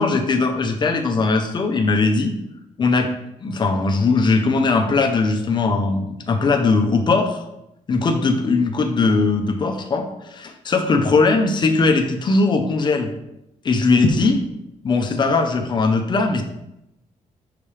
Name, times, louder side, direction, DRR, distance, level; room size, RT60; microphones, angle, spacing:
voice 1, 0.0-2.3 2.8-3.1 3.4-7.4 7.9-13.1 13.6-14.4 14.8-16.4, left 3 dB, 35° left, 4 dB, 0.9 m, -19 dB
7.2 x 5.9 x 3.4 m, 0.86 s
cardioid pair, 150°, 13 cm